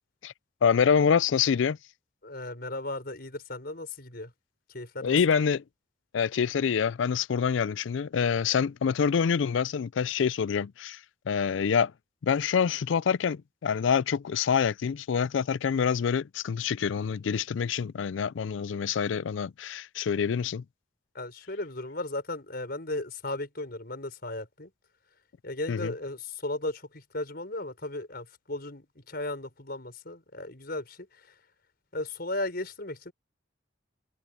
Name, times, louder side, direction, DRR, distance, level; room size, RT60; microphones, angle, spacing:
voice 1, 0.6-1.8 5.0-5.6 6.1-11.0 11.3-11.9 12.2-20.6 25.7-25.9, left 6 dB, 75° left, 0.4 m, -26 dB
voice 2, 2.2-4.3 4.7-5.2 21.1-24.7 25.4-31.3 31.9-33.1, left 2 dB, 50° left, 5.3 m, -36 dB
head